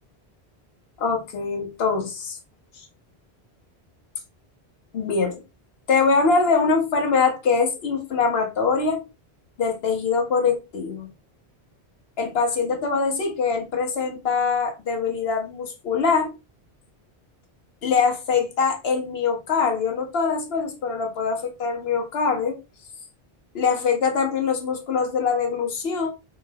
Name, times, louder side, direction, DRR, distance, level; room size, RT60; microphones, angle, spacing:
voice 1, 1.0-2.4 4.9-5.4 5.9-9.0 9.6-11.1 12.2-16.3 17.8-22.6 23.5-26.1, left 5 dB, 70° left, 1.1 m, -23 dB
3.8 x 2.3 x 3.2 m
omnidirectional pair, 1.1 m